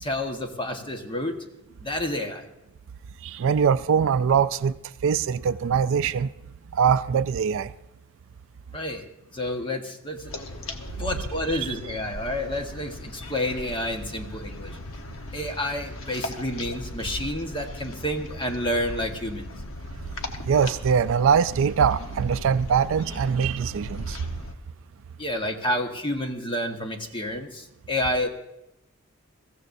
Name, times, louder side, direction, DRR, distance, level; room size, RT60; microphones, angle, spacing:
voice 1, 0.0-1.3 1.8-2.5 8.7-9.1 9.3-10.5 10.9-14.7 15.3-19.5 25.2-28.3, left 1 dB, 25° left, 1.3 m, -29 dB
voice 2, 3.2-4.7 5.0-6.3 6.7-7.7 20.4-24.2, right 7 dB, 65° right, 0.4 m, -22 dB
sound 1, 10.3-24.5, left 1 dB, 70° left, 1.1 m, -38 dB
21.5 x 15.0 x 2.6 m
head